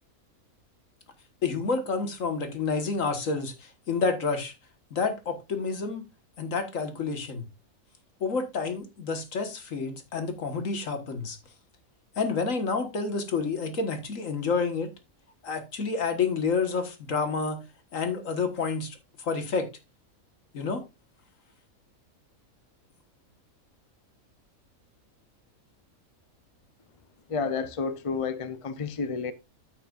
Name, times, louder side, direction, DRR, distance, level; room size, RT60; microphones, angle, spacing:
voice 1, 1.4-4.5 4.9-6.0 6.4-7.5 8.2-11.4 12.2-14.9 15.4-17.6 17.9-19.7 20.5-20.8, left 4 dB, 65° left, 1.9 m, -29 dB
voice 2, 27.3-29.3, left 5 dB, 35° left, 0.6 m, -30 dB
13.5 x 5.9 x 2.5 m
omnidirectional pair, 1.5 m